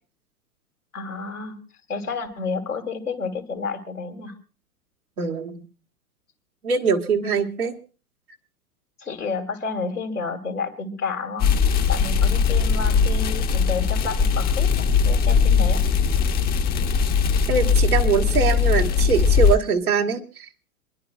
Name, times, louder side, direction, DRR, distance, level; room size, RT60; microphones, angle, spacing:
voice 1, 0.9-1.6 1.9-4.3 7.6-7.7 9.0-11.5 11.9-15.9, left 4 dB, 85° left, 4 dB, 2.8 m, -30 dB
voice 2, 5.2-5.6 6.6-7.8 17.5-20.5, right 6 dB, 75° right, 2 dB, 1.9 m, -23 dB
sound 1, 11.4-19.6, left 6 dB, 20° left, 0.9 m, -20 dB
27.0 x 11.0 x 2.4 m, 0.34 s
figure-of-eight pair, 100°, 44 cm